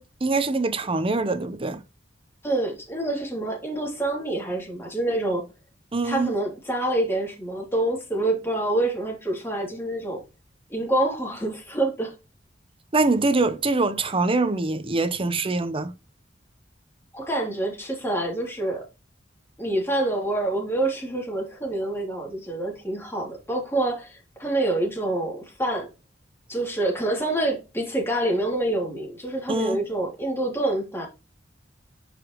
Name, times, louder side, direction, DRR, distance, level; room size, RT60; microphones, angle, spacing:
voice 1, 0.0-1.8 5.9-6.3 12.9-15.9 29.5-29.8, right 3 dB, 30° right, 0.8 m, -24 dB
voice 2, 2.4-5.4 6.0-10.2 10.7-12.1 17.1-18.8 19.6-25.9 26.5-31.1, right 1 dB, 15° left, 3.1 m, -26 dB
10.0 x 5.0 x 3.1 m
head